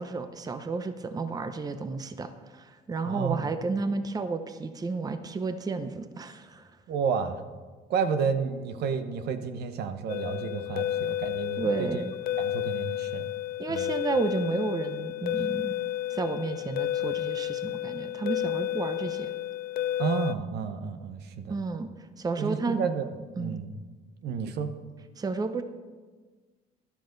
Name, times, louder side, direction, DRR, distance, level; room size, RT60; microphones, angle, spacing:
voice 1, 0.0-6.7 11.6-12.2 13.6-15.7 16.1-19.3 21.5-21.9 22.2-22.8 23.4-23.6 25.2-25.6, right 3 dB, 20° right, 9 dB, 0.8 m, -32 dB
voice 2, 3.0-3.5 6.9-7.4 7.9-11.9 12.4-13.3 13.7-13.8 20.0-21.6 22.4-23.1 23.4-23.7 24.2-24.7, right 6 dB, 75° right, 8 dB, 1.1 m, -31 dB
sound 1, 10.1-20.3, left 13 dB, 60° left, 0.5 m, -31 dB
13.5 x 11.5 x 4.0 m, 1.4 s
cardioid pair, 110°, 17 cm